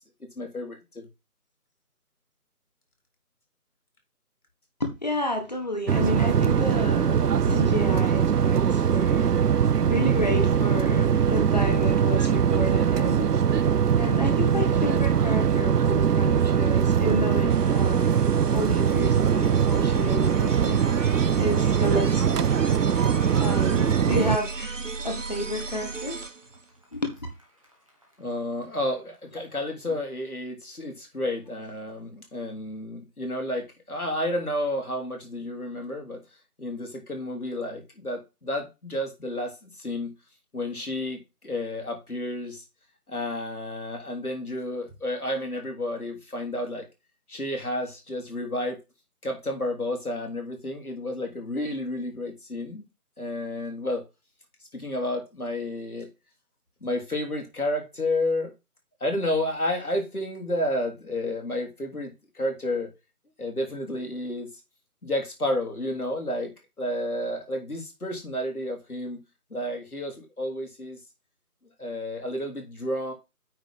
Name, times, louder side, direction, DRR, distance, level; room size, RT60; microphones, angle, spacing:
voice 1, 0.4-1.1 28.2-36.2 36.6-40.1 40.5-42.6 43.1-46.9 47.3-48.8 49.2-52.8 53.2-54.0 54.7-56.1 56.8-58.5 59.0-62.9 63.4-64.5 65.0-66.5 66.8-69.2 69.5-71.0 71.8-73.1, left 1 dB, 70° left, 3.4 m, -31 dB
voice 2, 4.8-9.3 9.9-13.3 14.0-18.1 18.5-21.0 21.4-22.5 23.4-24.7 25.0-26.2 26.9-27.1, left 2 dB, 25° left, 1.6 m, -31 dB
sound 1, 5.9-24.4, right 8 dB, 85° right, 0.6 m, -22 dB
sound 2, 17.5-26.6, right 4 dB, 55° right, 0.7 m, -35 dB
Crowd / Fireworks, 19.1-24.5 24.8-25.4 25.7-29.2, equal, 20° right, 1.7 m, -46 dB
9.0 x 4.1 x 5.5 m
figure-of-eight pair, 165°, 46 cm